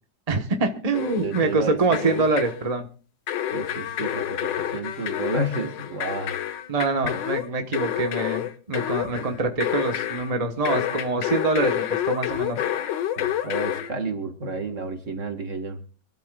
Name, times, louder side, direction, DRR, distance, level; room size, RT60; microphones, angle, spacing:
voice 1, 0.3-2.9 6.7-12.6, right 3 dB, 25° right, 5 dB, 0.9 m, -25 dB
sound 1, 0.9-1.6 1.9-2.6 3.3-10.3 10.7-13.9, left 11 dB, 70° left, 1.6 m, -29 dB
voice 2, 1.2-2.3 3.5-6.3 9.1-9.2 12.5-12.6 13.2-15.8, right 2 dB, 40° right, 7 dB, 1.8 m, -31 dB
26.0 x 13.0 x 2.3 m, 0.37 s
omnidirectional pair, 2.1 m